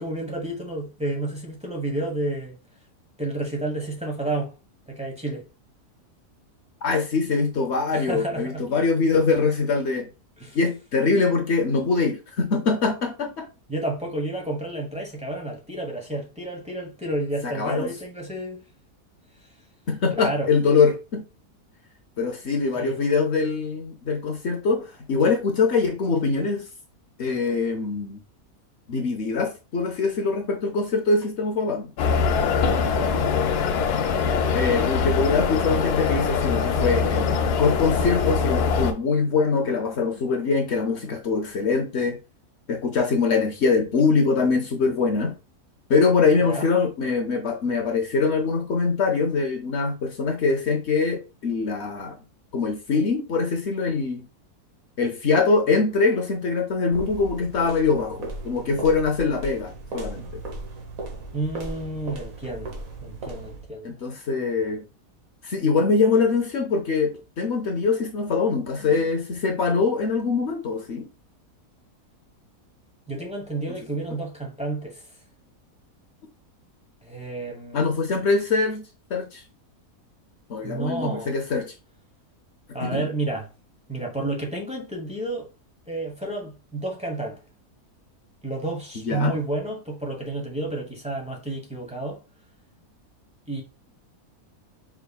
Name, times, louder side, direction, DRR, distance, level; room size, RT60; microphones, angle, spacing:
voice 1, 0.0-2.6 3.2-4.5 4.9-5.4 7.9-8.6 10.4-10.6 13.7-18.6 20.1-20.5 22.8-23.0 32.5-33.1 46.4-46.7 61.3-64.0 73.1-75.0 77.0-77.8 80.6-81.3 82.7-83.5 83.9-85.5 85.9-87.4 88.4-92.2 93.5-93.6, right 2 dB, 5° right, 0.9 m, -30 dB
voice 2, 6.8-10.1 10.5-13.5 17.4-17.9 19.9-21.2 22.2-26.7 27.2-28.2 28.9-31.9 34.5-42.2 42.7-45.4 45.9-52.2 52.5-54.3 55.0-60.4 63.8-64.8 65.4-71.1 77.7-79.4 80.5-81.7 82.8-83.1 89.0-89.3, left 4 dB, 55° left, 0.9 m, -23 dB
sound 1, 32.0-38.9, left 5 dB, 90° left, 1.2 m, -23 dB
sound 2, 56.9-63.7, right 2 dB, 65° right, 1.5 m, -37 dB
5.1 x 3.5 x 2.3 m
omnidirectional pair, 1.6 m